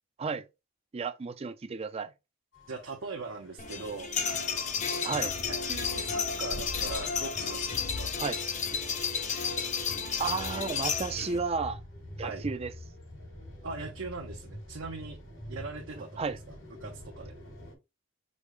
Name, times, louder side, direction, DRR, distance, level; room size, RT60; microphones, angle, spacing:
voice 1, 0.9-2.1 5.0-5.3 8.2-8.4 10.2-11.8 12.2-12.7 16.2-16.4, right 5 dB, 30° right, 0.4 m, -32 dB
sound 1, 2.5-17.7, left 1 dB, 80° left, 3.2 m, -47 dB
voice 2, 2.7-4.1 5.4-8.1 12.2-12.4 13.6-15.2 15.5-17.3, right 4 dB, 75° right, 0.8 m, -41 dB
sound 2, 3.6-11.4, left 5 dB, 40° left, 0.7 m, -32 dB
5.3 x 2.1 x 4.7 m
head